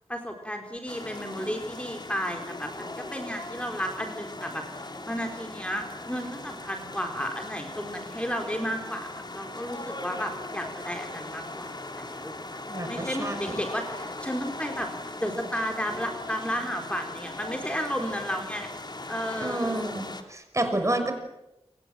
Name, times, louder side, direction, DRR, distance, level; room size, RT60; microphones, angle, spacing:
voice 1, 0.1-12.3 12.9-14.9 15.2-18.7 19.1-20.0, equal, 10° left, 3 dB, 4.1 m, -33 dB
sound 1, 0.9-20.2, left 2 dB, 40° left, 3.2 m, -39 dB
voice 2, 12.7-13.6 19.4-21.1, right 1 dB, 30° right, 6 dB, 5.9 m, -29 dB
29.0 x 24.5 x 7.6 m, 0.95 s
wide cardioid pair, 85°, 11 cm